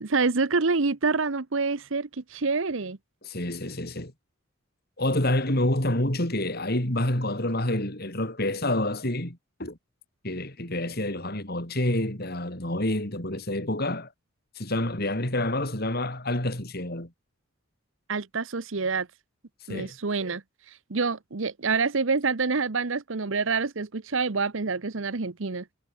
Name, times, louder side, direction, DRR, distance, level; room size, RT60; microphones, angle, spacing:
voice 1, 0.0-3.0 18.1-19.1 19.7-20.4 20.7-25.6, right 4 dB, 65° right, 0.9 m, -27 dB
voice 2, 3.2-4.1 5.0-9.8 10.2-14.1 14.6-17.1 19.7-20.0, left 1 dB, 45° left, 4.3 m, -28 dB
head